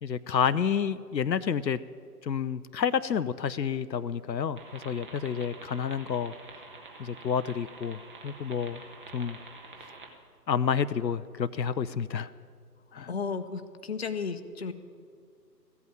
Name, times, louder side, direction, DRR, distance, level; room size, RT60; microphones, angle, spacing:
voice 1, 0.0-1.8 2.2-6.3 7.0-8.8 9.1-9.4 10.5-12.3 12.9-13.1, left 7 dB, 85° left, 13 dB, 0.6 m, -29 dB
sound 1, 4.6-10.1, right 3 dB, 30° right, 1.3 m, -47 dB
voice 2, 13.1-14.7, left 5 dB, 40° left, 9 dB, 0.8 m, -34 dB
15.0 x 8.4 x 9.1 m, 2.1 s
figure-of-eight pair, 140°, 49 cm